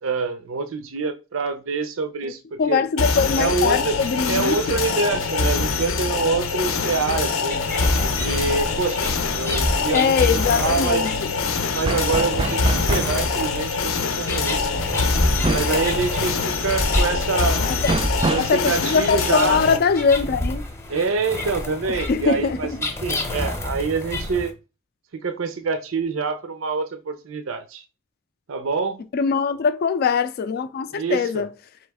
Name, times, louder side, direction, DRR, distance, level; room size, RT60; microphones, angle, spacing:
voice 1, 0.0-2.8 3.3-4.0 4.3-7.6 8.2-11.1 11.7-14.7 15.5-17.6 18.3-19.6 20.9-24.5 25.1-27.8 28.5-29.0 30.9-31.5, right 4 dB, 80° right, 0.6 m, -26 dB
voice 2, 2.6-4.6 9.9-11.3 17.6-17.9 18.4-20.6 21.9-22.6 29.1-31.5, left 5 dB, 50° left, 0.3 m, -22 dB
sound 1, 3.0-19.8, left 4 dB, 90° left, 0.6 m, -24 dB
sound 2, 7.5-24.5, left 1 dB, 15° left, 0.7 m, -29 dB
sound 3, 11.9-13.2 15.4-15.8 17.9-18.6, right 3 dB, 25° right, 0.3 m, -25 dB
4.1 x 3.1 x 3.4 m
head